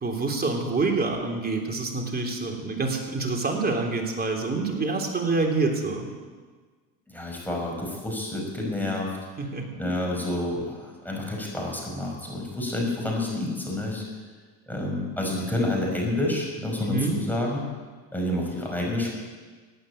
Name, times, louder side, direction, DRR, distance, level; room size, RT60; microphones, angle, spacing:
voice 1, 0.0-6.1 9.4-9.7 16.8-17.2, right 3 dB, 25° right, 2 dB, 3.5 m, -27 dB
voice 2, 7.1-9.2 9.8-14.0 14.7-17.7 18.1-19.1, left 1 dB, 5° left, -1 dB, 5.5 m, -29 dB
15.5 x 9.2 x 8.8 m, 1.5 s
hypercardioid pair, 90°, 41 cm